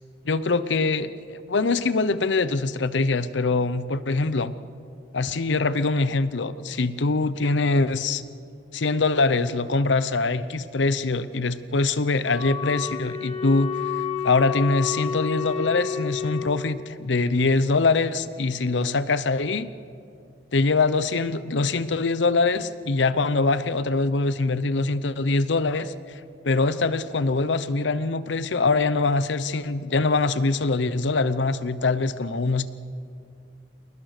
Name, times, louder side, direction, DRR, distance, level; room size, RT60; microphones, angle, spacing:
voice 1, 0.2-4.5 5.1-8.2 8.7-13.7 14.2-19.7 20.5-32.7, left 3 dB, 75° left, 15 dB, 0.7 m, -23 dB
Wind instrument woodwind instrument, 12.2-16.5, left 7 dB, 35° left, 1.7 m, -30 dB
28.0 x 19.5 x 6.6 m, 2.5 s
head